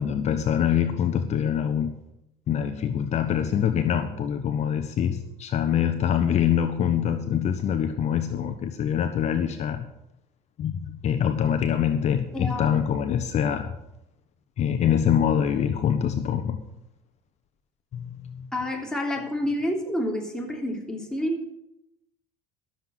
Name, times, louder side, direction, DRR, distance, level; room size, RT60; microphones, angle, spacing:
voice 1, 0.0-1.9 2.5-9.9 10.6-13.7 14.6-16.6 17.9-18.5, left 8 dB, 50° left, 8 dB, 1.1 m, -24 dB
voice 2, 12.3-12.7 18.5-21.5, left 1 dB, 5° left, 0 dB, 3.3 m, -29 dB
13.0 x 7.5 x 7.9 m, 0.85 s
cardioid pair, 105°, 15 cm